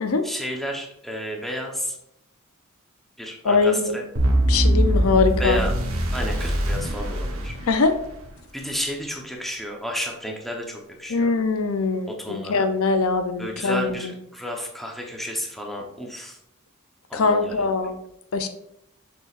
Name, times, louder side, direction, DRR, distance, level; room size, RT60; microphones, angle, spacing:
voice 1, 0.2-2.0 3.2-4.0 5.4-5.8 6.1-7.6 8.5-11.3 12.2-12.7 13.4-16.4 17.1-17.9, left 1 dB, ahead, 0 dB, 1.0 m, -31 dB
voice 2, 3.4-4.0 4.5-5.6 7.7-7.9 11.1-13.9 17.1-17.9 18.3-18.5, left 4 dB, 75° left, 8 dB, 0.6 m, -22 dB
sound 1, 4.2-8.3, right 1 dB, 70° right, 1.2 m, -22 dB
6.9 x 6.3 x 2.5 m, 0.81 s
head